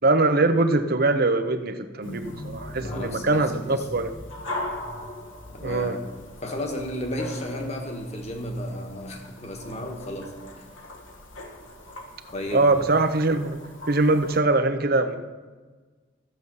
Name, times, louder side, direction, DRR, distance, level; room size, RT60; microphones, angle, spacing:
voice 1, 0.0-4.1 5.6-6.0 12.5-13.6 13.9-15.2, right 2 dB, 50° right, 8 dB, 0.8 m, -22 dB
sound 1, 2.0-14.4, left 1 dB, 75° left, 1.6 m, -40 dB
voice 2, 2.8-3.9 5.5-10.7 12.3-12.9, left 1 dB, 35° left, 3 dB, 1.5 m, -33 dB
14.0 x 7.9 x 5.5 m, 1.4 s
head